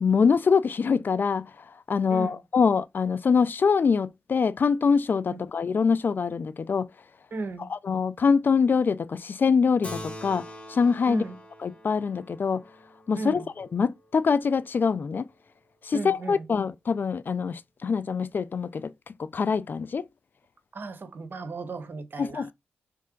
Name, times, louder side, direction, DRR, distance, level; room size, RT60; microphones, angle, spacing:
voice 1, 0.0-1.5 1.9-6.9 7.6-11.2 11.6-12.6 13.1-15.3 15.8-20.1 22.2-22.5, left 5 dB, 50° left, 0.3 m, -24 dB
voice 2, 2.1-2.4 5.3-5.4 7.3-7.7 11.1-11.4 13.2-13.5 15.9-16.5 20.7-22.5, right 3 dB, 50° right, 1.1 m, -35 dB
Keyboard (musical), 9.8-14.7, equal, 30° left, 1.1 m, -44 dB
3.7 x 3.2 x 3.8 m
cardioid pair, 50°, 4 cm